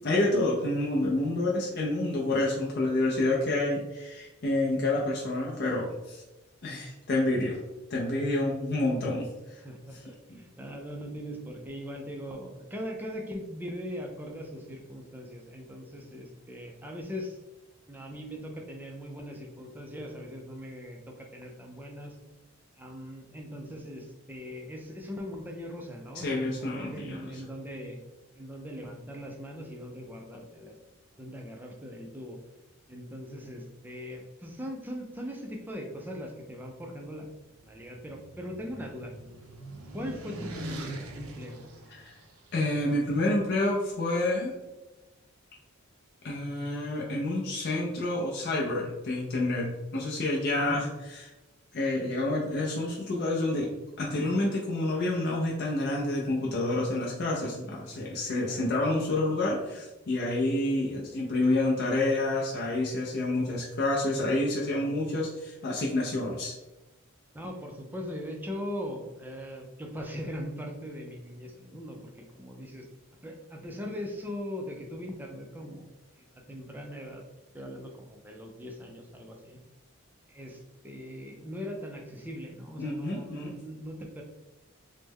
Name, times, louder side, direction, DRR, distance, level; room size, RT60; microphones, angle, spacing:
voice 1, 0.0-6.2 6.6-7.6 7.9-9.6 10.3-10.4 26.2-27.2 42.0-42.1 42.5-44.5 46.2-51.2 51.7-53.7 54.0-66.5 82.8-83.5, left 2 dB, 50° left, -3 dB, 0.4 m, -28 dB
voice 2, 4.7-5.0 9.6-17.4 17.9-22.2 22.7-28.0 28.3-30.7 31.2-32.4 32.9-37.3 37.6-39.1 39.9-41.6 50.6-50.9 57.9-58.7 67.3-72.9 73.2-75.9 76.2-77.2 77.5-79.6 80.3-84.2, equal, 10° right, 1 dB, 0.3 m, -40 dB
sound 1, 37.4-42.7, right 1 dB, 75° right, 0.5 m, -42 dB
3.2 x 2.1 x 3.4 m, 1.0 s
head